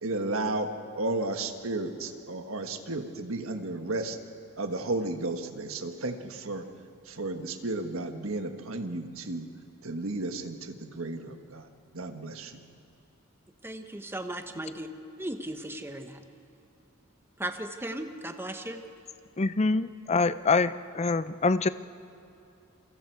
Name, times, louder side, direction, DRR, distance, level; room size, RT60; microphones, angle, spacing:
voice 1, 0.0-0.7 0.9-4.2 4.6-6.6 7.0-9.5 9.8-11.7 11.9-12.6, right 2 dB, 70° right, 6 dB, 1.5 m, -33 dB
voice 2, 13.6-14.9 15.2-16.2 17.4-18.8, right 1 dB, 10° right, 6 dB, 1.1 m, -36 dB
voice 3, 19.4-21.7, left 3 dB, 30° left, 14 dB, 0.5 m, -25 dB
29.0 x 23.5 x 4.7 m, 2.8 s
head